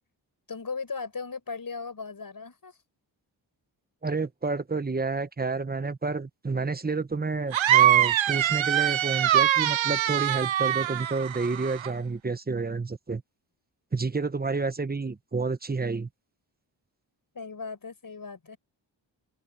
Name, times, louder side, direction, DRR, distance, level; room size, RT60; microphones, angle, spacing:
voice 1, 0.5-2.8 17.3-18.6, left 4 dB, 45° left, 6.7 m, -37 dB
voice 2, 4.0-13.2 13.9-16.1, right 4 dB, 20° right, 0.9 m, -30 dB
sound 1, 7.5-11.9, right 12 dB, 85° right, 0.8 m, -23 dB
open air
wide cardioid pair, 95°, 45 cm